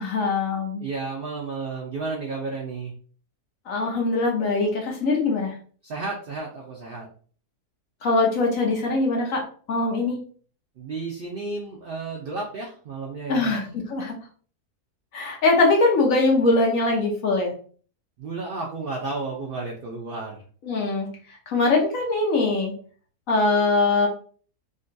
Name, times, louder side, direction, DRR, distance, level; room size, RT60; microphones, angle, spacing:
voice 1, 0.0-0.8 3.7-5.5 8.0-9.4 9.7-10.2 13.3-14.1 15.1-17.5 20.6-21.1 21.5-22.7 23.3-24.1, left 3 dB, 65° left, 0 dB, 1.1 m, -22 dB
voice 2, 0.8-2.9 5.8-7.1 10.8-13.5 18.2-20.4, right 3 dB, 70° right, -1 dB, 0.5 m, -32 dB
3.7 x 2.2 x 2.5 m, 0.44 s
omnidirectional pair, 1.6 m